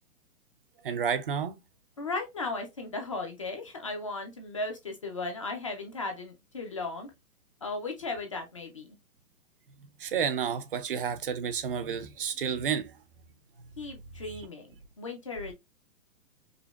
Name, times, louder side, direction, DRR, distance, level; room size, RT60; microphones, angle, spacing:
voice 1, 0.8-1.6 10.0-12.9, right 7 dB, 40° right, 0.4 m, -30 dB
voice 2, 2.0-7.1 7.6-9.0 13.8-14.7 15.0-15.5, left 3 dB, 25° left, 0.4 m, -36 dB
5.0 x 2.1 x 2.2 m
hypercardioid pair, 135°, 45 cm